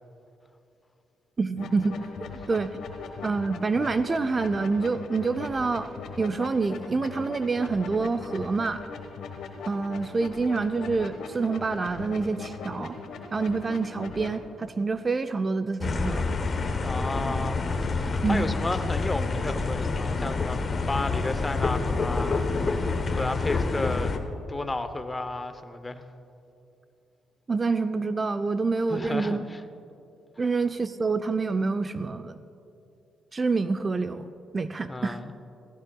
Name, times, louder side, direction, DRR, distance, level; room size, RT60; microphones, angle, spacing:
voice 1, 1.4-2.8 3.2-8.8 9.7-13.0 13.3-16.2 18.2-18.5 27.5-29.4 30.4-32.4 33.3-35.2, right 4 dB, 30° right, 11 dB, 0.4 m, -27 dB
sound 1, 1.6-14.4, left 4 dB, 75° left, 1.2 m, -40 dB
sound 2, 15.8-24.2, left 3 dB, 40° left, 1.0 m, -27 dB
voice 2, 16.8-17.6 17.9-20.6 20.9-22.9 23.2-24.1 24.5-26.0 28.9-29.6 34.9-35.3, left 2 dB, 20° left, 10 dB, 0.7 m, -32 dB
15.5 x 15.5 x 2.3 m, 2.8 s
cardioid pair, 90°, 0 cm